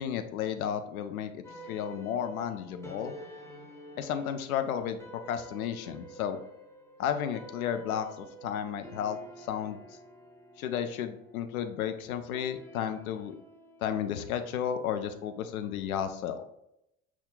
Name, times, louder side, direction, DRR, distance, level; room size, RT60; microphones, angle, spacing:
voice 1, 0.0-3.1 4.0-5.0 5.3-6.4 7.0-9.8 10.6-13.3 13.8-16.4, left 9 dB, 80° left, 8 dB, 0.6 m, -33 dB
quarter cine, 1.4-16.0, right 1 dB, 5° left, 0.9 m, -50 dB
5.9 x 2.3 x 3.8 m, 0.79 s
hypercardioid pair, 65°, 42 cm